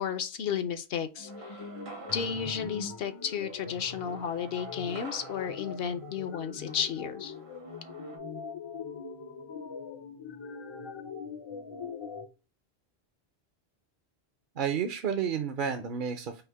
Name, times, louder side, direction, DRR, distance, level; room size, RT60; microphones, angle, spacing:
voice 1, 0.0-1.6 2.1-7.3, left 7 dB, 65° left, 0.7 m, -33 dB
sound 1, 1.2-12.3, left 5 dB, 35° left, 0.4 m, -42 dB
sound 2, 1.3-8.2, right 2 dB, 75° right, 1.5 m, -49 dB
voice 2, 14.6-16.4, right 7 dB, 55° right, 0.7 m, -31 dB
5.5 x 2.1 x 4.5 m
omnidirectional pair, 1.1 m